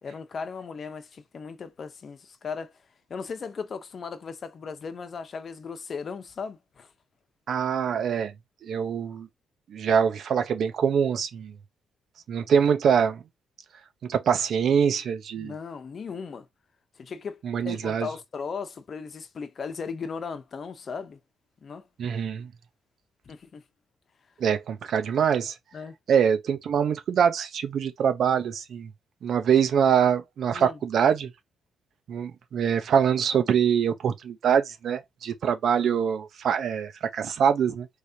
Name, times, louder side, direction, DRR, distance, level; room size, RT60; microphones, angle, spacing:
voice 1, 0.0-2.7 3.1-6.9 15.4-16.5 17.0-21.2 21.6-21.9 23.3-23.6 25.7-25.9 30.5-30.8, left 5 dB, 45° left, 0.9 m, -37 dB
voice 2, 7.5-8.3 8.6-9.3 9.7-11.5 12.3-13.2 14.0-15.5 17.4-18.1 22.0-22.5 24.4-25.5 26.1-28.9 29.2-31.3 32.1-37.9, right 7 dB, 65° right, 0.8 m, -24 dB
4.9 x 3.2 x 2.8 m
cardioid pair, 90°, 0 cm